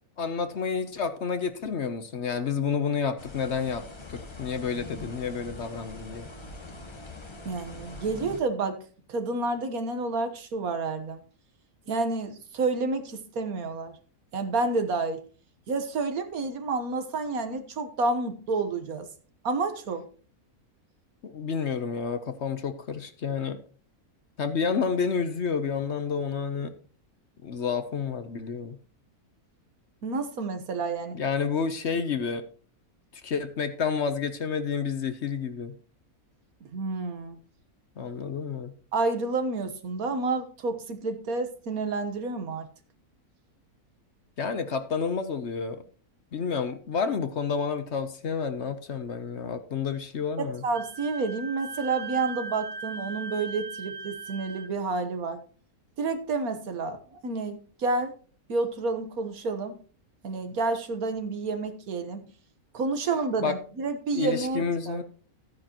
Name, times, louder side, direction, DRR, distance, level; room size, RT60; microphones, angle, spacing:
voice 1, 0.2-3.8 4.1-6.3 21.2-23.6 24.4-26.7 27.4-28.8 31.1-32.4 33.1-35.7 38.0-38.7 44.4-45.8 46.3-50.6 63.4-63.5 64.1-65.0, left 6 dB, 55° left, 10 dB, 1.0 m, -30 dB
sound 1, 3.2-8.4, left 2 dB, 20° left, 0.9 m, -43 dB
voice 2, 7.4-8.8 9.1-11.2 11.9-14.0 14.3-15.2 15.7-19.1 19.4-20.0 30.0-31.2 36.7-37.4 38.9-42.7 50.4-55.4 56.0-58.1 58.5-59.8 60.2-62.2 62.7-65.0, right 3 dB, 75° right, 8 dB, 1.6 m, -29 dB
Wind instrument woodwind instrument, 50.7-54.7, right 4 dB, 55° right, 1.6 m, -38 dB
13.5 x 9.5 x 3.0 m, 0.40 s
omnidirectional pair, 1.6 m